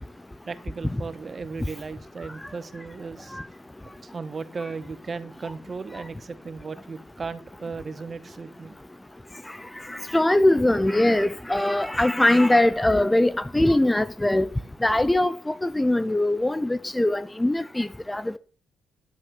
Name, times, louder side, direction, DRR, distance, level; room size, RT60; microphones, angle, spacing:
voice 1, 0.4-3.4 4.0-8.8, right 4 dB, 35° right, 1.3 m, -36 dB
voice 2, 9.9-14.5 14.8-18.4, left 1 dB, 10° left, 0.6 m, -21 dB
11.0 x 8.6 x 6.6 m
cardioid pair, 90°, 0 cm